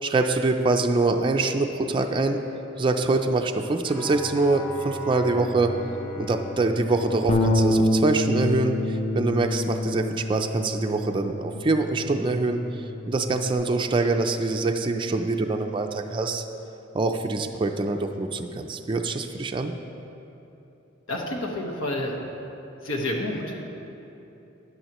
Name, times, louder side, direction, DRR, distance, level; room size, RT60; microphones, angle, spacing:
voice 1, 0.0-2.4 2.8-5.8 6.2-16.4 16.9-19.7, right 3 dB, 25° right, 4 dB, 0.4 m, -24 dB
Bowed string instrument, 3.8-8.3, equal, 15° left, 1.3 m, -38 dB
Bass guitar, 7.3-13.5, left 1 dB, 30° left, 0.6 m, -27 dB
voice 2, 21.1-22.2 22.8-23.6, left 1 dB, 80° left, 0 dB, 1.3 m, -29 dB
13.0 x 9.7 x 3.0 m, 3.0 s
head